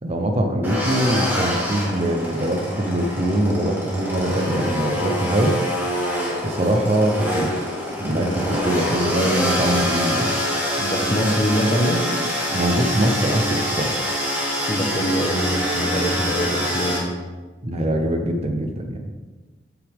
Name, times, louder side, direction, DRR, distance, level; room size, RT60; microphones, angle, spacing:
voice 1, 0.0-5.6 6.4-7.6 8.0-10.4 12.5-13.9 17.6-19.1, right 1 dB, 35° right, 4 dB, 0.7 m, -23 dB
sound 1, 0.6-17.0, equal, 10° right, 1.9 m, -25 dB
voice 2, 8.1-9.0 10.8-12.0 14.7-17.0, equal, 30° left, 2 dB, 1.1 m, -24 dB
8.3 x 8.1 x 3.5 m, 1.3 s
head